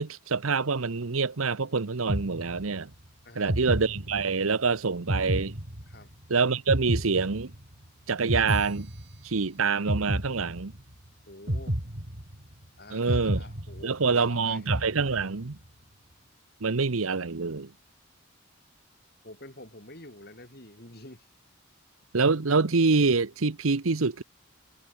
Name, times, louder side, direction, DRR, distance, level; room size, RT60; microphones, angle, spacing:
voice 1, 0.0-2.9 3.4-5.6 6.3-7.5 8.1-8.9 9.2-10.7 12.9-13.4 13.8-15.6 16.6-17.7 22.1-24.2, right 4 dB, 90° right, 1.0 m, -26 dB
sound 1, 2.1-2.9 3.5-4.5 5.1-6.2 6.7-7.9 8.3-9.5 9.9-10.9 11.5-12.6 13.1-14.3 14.7-15.5, equal, 50° right, 3.7 m, -31 dB
voice 2, 3.2-3.7 5.9-6.1 11.3-11.8 12.8-14.8 19.2-21.3, left 1 dB, 50° left, 6.6 m, -48 dB
head